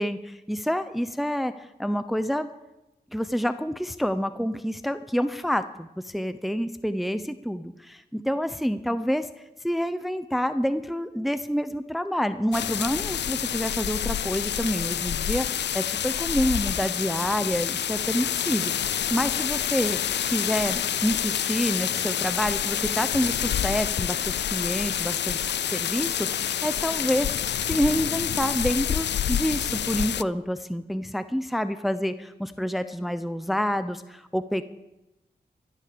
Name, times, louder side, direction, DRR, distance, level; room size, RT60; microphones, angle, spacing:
voice 1, 0.0-2.5 3.1-9.3 9.6-20.0 20.3-34.6, equal, ahead, 10 dB, 0.8 m, -28 dB
sound 1, 12.5-30.2, left 10 dB, 80° left, 0.4 m, -28 dB
14.0 x 12.0 x 6.9 m, 0.96 s
cardioid pair, 50°, 18 cm